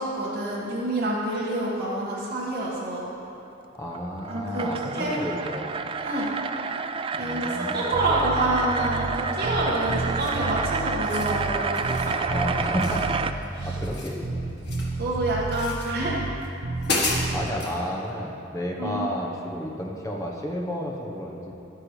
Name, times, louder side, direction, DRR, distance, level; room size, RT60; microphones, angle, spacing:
voice 1, 0.0-3.1 4.3-5.2 6.0-6.3 7.2-12.2 13.5-13.7 15.0-16.1 16.9-17.2 18.8-19.1, right 1 dB, 55° right, -8 dB, 1.8 m, -27 dB
voice 2, 3.7-5.9 7.2-7.9 12.3-14.4 17.3-21.5, equal, 15° left, -1 dB, 1.0 m, -32 dB
sound 1, 3.8-13.3, right 5 dB, 25° right, 0.3 m, -30 dB
Bass guitar, 7.9-9.2 9.4-11.6 11.8-14.0 14.2-16.4 16.6-17.5, right 2 dB, 80° right, 0.9 m, -31 dB
sound 2, 10.2-10.5 10.9-11.4 11.8-12.1 12.8-13.5 13.7-15.0 15.5-15.9 16.4-16.5 16.8-17.8, left 3 dB, 60° left, 1.6 m, -31 dB
12.0 x 11.0 x 3.3 m, 2.8 s
head